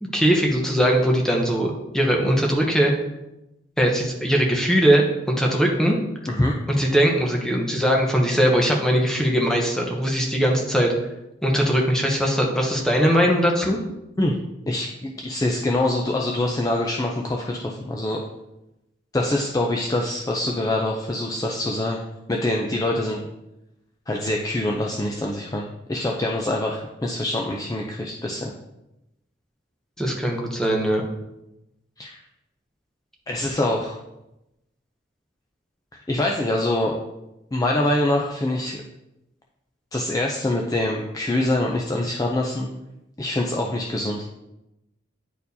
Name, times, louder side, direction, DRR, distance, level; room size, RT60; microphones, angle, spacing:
voice 1, 0.0-2.9 3.8-6.0 6.7-10.9 11.4-13.8 30.0-31.1, equal, 5° left, -1 dB, 0.9 m, -20 dB
voice 2, 14.7-18.2 19.1-22.0 22.3-23.2 24.1-28.5 32.0-32.2 33.3-34.0 36.1-37.0 37.5-38.8 39.9-42.7 43.2-44.2, left 1 dB, 20° left, 0 dB, 0.4 m, -24 dB
9.9 x 4.4 x 2.7 m, 0.92 s
head